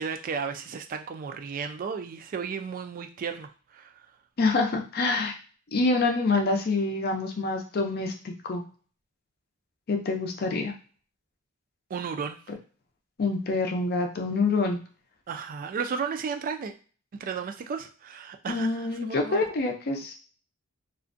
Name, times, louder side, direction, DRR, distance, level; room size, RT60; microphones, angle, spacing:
voice 1, 0.0-4.1 11.9-12.4 15.3-16.7 17.1-19.4, right 6 dB, 40° right, 6 dB, 0.3 m, -34 dB
voice 2, 4.4-5.3 5.7-8.6 9.9-10.7 13.2-14.8 18.5-20.1, left 3 dB, 50° left, 2 dB, 0.5 m, -26 dB
2.4 x 2.1 x 2.5 m, 0.39 s
head